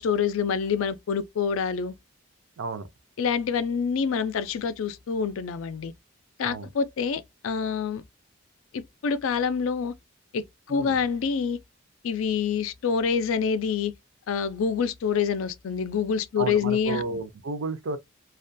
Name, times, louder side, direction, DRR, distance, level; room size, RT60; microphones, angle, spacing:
voice 1, 0.0-1.9 3.2-5.9 6.4-8.0 8.7-9.9 10.3-11.6 12.0-13.9 14.3-17.0, left 6 dB, 75° left, 0.4 m, -26 dB
voice 2, 2.6-2.9 6.4-6.7 10.7-11.0 16.4-18.0, right 4 dB, 70° right, 0.5 m, -32 dB
2.3 x 2.2 x 2.5 m
head